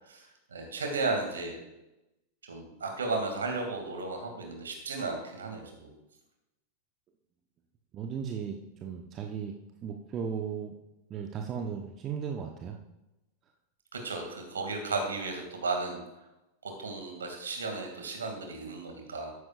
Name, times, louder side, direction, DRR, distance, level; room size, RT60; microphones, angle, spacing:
voice 1, 0.1-1.6 2.4-5.9 13.9-16.0 16.6-19.3, right 3 dB, 70° right, 3 dB, 2.4 m, -34 dB
voice 2, 7.9-10.7 11.1-12.8, right 7 dB, 30° right, 3 dB, 1.0 m, -36 dB
13.5 x 11.0 x 2.5 m, 0.95 s
figure-of-eight pair, 90°, 0 cm